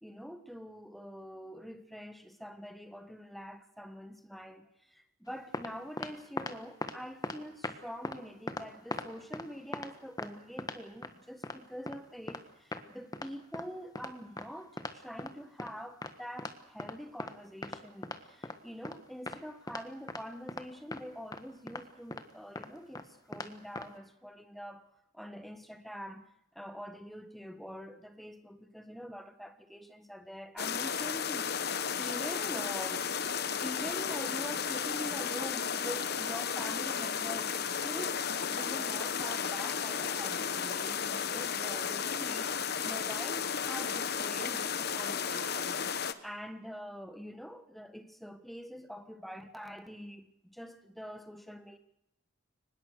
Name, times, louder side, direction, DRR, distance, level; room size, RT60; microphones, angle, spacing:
voice 1, 0.0-24.9 25.1-26.3 26.5-33.1 33.6-51.8, equal, ahead, 1.3 m, -45 dB
sound 1, 5.3-5.7 6.0-6.6 6.8-7.0 7.2-7.8 8.0-8.2 8.5-9.5 9.7-9.9 10.2-10.3 10.6-11.1 11.4-11.6 11.9-12.0 12.3-12.4 12.7-12.8 13.1-13.3 13.5-13.6 13.9-14.1 14.4-14.5 14.8-15.3 15.6-15.7 16.0-16.1 16.4-16.5 16.8-17.3 17.6-18.6 18.8-19.0 19.3-19.4 19.7-19.8 20.1-20.2 20.5-20.7 20.9-21.0 21.3-21.4 21.7-21.8 22.1-22.2 22.5-22.7 22.9-23.0 23.3-23.5 23.7-23.9, left 2 dB, 15° left, 1.4 m, -39 dB
sound 2, 30.6-46.1, left 7 dB, 50° left, 1.1 m, -34 dB
24.0 x 20.5 x 6.6 m
head